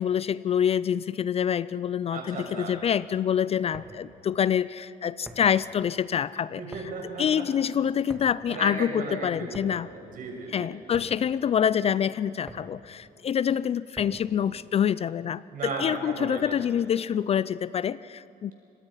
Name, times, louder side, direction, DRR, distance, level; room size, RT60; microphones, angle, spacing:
voice 1, 0.0-6.6 7.2-9.9 10.5-18.5, left 8 dB, 35° left, 19 dB, 0.4 m, -26 dB
voice 2, 2.1-2.8 6.6-7.4 8.5-10.7 15.5-16.6, right 3 dB, 55° right, 0 dB, 6.5 m, -36 dB
sound 1, 3.7-14.4, right 1 dB, 5° right, 2.4 m, -49 dB
25.5 x 21.0 x 5.7 m, 2.8 s
cardioid pair, 110°, 17 cm